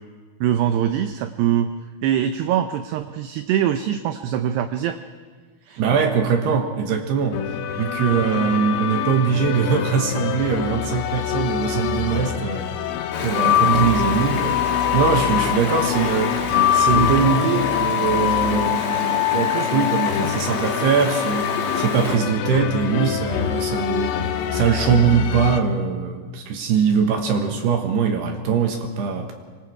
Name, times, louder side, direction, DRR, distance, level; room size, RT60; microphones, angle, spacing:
voice 1, 0.4-1.7 2.0-5.0 5.7-5.8 11.7-11.9 13.6-13.9, right 10 dB, 85° right, 8 dB, 2.3 m, -23 dB
voice 2, 5.8-7.4 7.8-12.7 13.2-14.6 14.9-16.4 16.7-24.2 24.5-29.3, right 6 dB, 70° right, 4 dB, 2.9 m, -22 dB
sound 1, 7.3-25.6, left 10 dB, 85° left, 3.6 m, -24 dB
Stream, 13.1-22.2, left 4 dB, 65° left, 4.8 m, -29 dB
25.5 x 24.0 x 4.8 m, 1.5 s
omnidirectional pair, 5.7 m